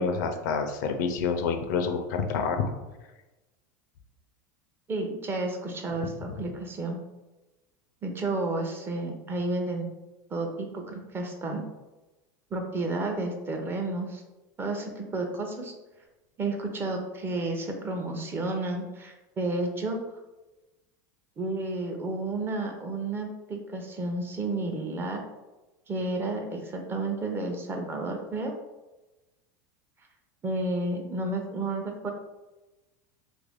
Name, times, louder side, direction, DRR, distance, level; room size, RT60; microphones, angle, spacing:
voice 1, 0.0-2.7 6.3-6.4, left 5 dB, 80° left, 6 dB, 0.5 m, -28 dB
voice 2, 4.9-7.0 8.0-9.9 10.3-11.7 12.5-14.2 14.6-15.7 16.4-20.0 21.4-25.2 25.9-28.5 30.4-32.1, right 2 dB, 25° right, 3 dB, 0.6 m, -31 dB
3.0 x 2.5 x 3.5 m, 1.1 s
supercardioid pair, 120°, 10 cm